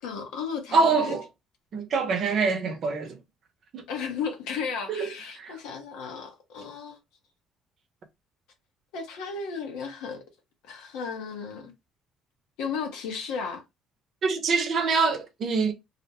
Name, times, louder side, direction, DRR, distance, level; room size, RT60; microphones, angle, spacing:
voice 1, 0.0-1.2 3.9-7.0 8.9-10.2 10.7-11.7 12.6-13.6, left 6 dB, 85° left, 0.8 m, -34 dB
voice 2, 0.7-1.3 1.7-3.2 3.7-3.8 4.9-5.1 5.4-5.6 14.2-15.7, right 4 dB, 55° right, 0.7 m, -25 dB
2.5 x 2.1 x 2.8 m
supercardioid pair, 85°, 0 cm